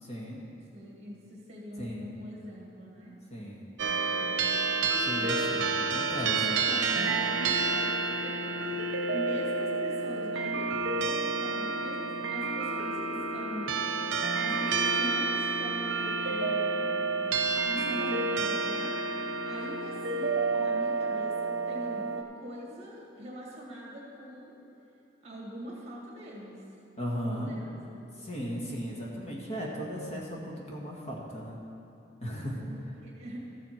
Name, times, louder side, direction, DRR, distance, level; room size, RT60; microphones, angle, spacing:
voice 1, 0.0-0.4 1.8-2.1 3.3-3.7 5.0-6.4 27.0-27.6 28.1-31.6 32.2-32.6, equal, 35° left, -3 dB, 1.4 m, -36 dB
voice 2, 0.7-3.1 3.8-5.7 6.3-8.4 9.1-14.0 14.4-17.2 17.7-19.0 19.4-24.6 25.2-26.6 27.3-28.1 32.6-33.5, equal, 35° right, -3 dB, 2.1 m, -42 dB
sound 1, 3.8-22.2, right 4 dB, 90° right, 0.7 m, -29 dB
14.0 x 7.3 x 4.4 m, 2.8 s
head